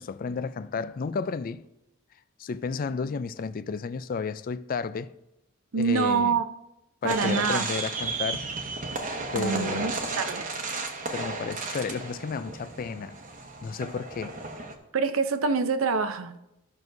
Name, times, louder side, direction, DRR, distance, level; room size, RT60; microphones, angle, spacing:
voice 1, 0.0-1.6 2.4-5.1 5.8-6.3 7.0-8.4 9.3-10.1 11.1-13.2 13.6-14.3, left 5 dB, 40° left, 0.3 m, -32 dB
voice 2, 5.7-6.4 7.0-7.7 9.4-10.5 14.9-16.3, right 5 dB, 70° right, 0.6 m, -26 dB
sound 1, 7.1-14.7, right 3 dB, 40° right, 1.0 m, -34 dB
14.0 x 6.1 x 2.7 m
head